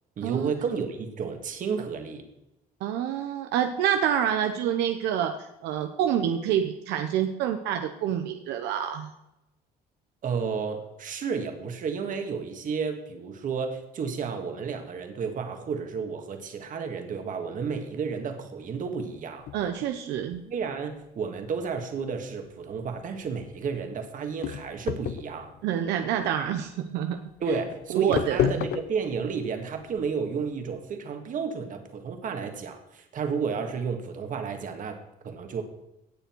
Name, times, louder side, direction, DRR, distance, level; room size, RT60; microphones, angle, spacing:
voice 1, 0.2-2.3 10.2-19.5 20.4-25.5 27.4-35.0 35.2-35.6, right 5 dB, 50° right, 6 dB, 1.9 m, -32 dB
voice 2, 2.8-9.1 19.5-20.4 25.6-27.2 27.9-28.6, right 9 dB, 85° right, 7 dB, 0.8 m, -27 dB
sound 1, 19.4-30.8, left 10 dB, 75° left, 0.6 m, -34 dB
17.0 x 6.8 x 4.6 m, 0.91 s
cardioid pair, 110°, 17 cm